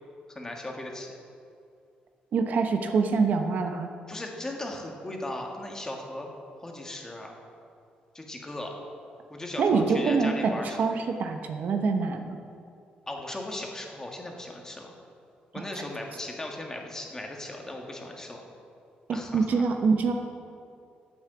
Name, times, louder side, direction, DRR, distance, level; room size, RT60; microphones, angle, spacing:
voice 1, 0.3-1.1 4.1-6.3 6.6-7.3 8.1-8.8 9.3-10.8 13.1-14.9 15.5-18.4 19.1-19.7, left 1 dB, 15° left, 1 dB, 1.7 m, -37 dB
voice 2, 2.3-3.9 9.6-12.4 15.6-15.7 19.1-20.1, right 4 dB, 60° right, 5 dB, 1.0 m, -25 dB
9.7 x 8.4 x 7.8 m, 2.5 s
cardioid pair, 115°, 3 cm